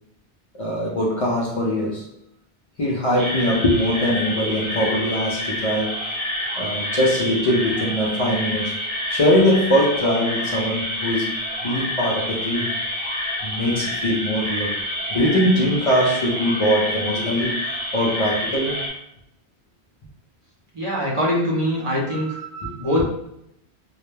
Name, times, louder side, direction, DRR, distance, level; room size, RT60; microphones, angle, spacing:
voice 1, 0.5-2.1 2.8-6.0 6.6-8.8 9.1-11.3 11.6-12.8 13.4-14.8 15.1-17.6 17.9-18.8 22.1-22.7, equal, 55° left, -4 dB, 0.4 m, -22 dB
sound 1, 3.2-18.9, left 1 dB, 70° right, 1.0 m, -28 dB
voice 2, 20.7-22.3 22.8-23.0, left 1 dB, 35° right, -4 dB, 0.6 m, -22 dB
2.2 x 2.1 x 3.1 m, 0.79 s
omnidirectional pair, 1.1 m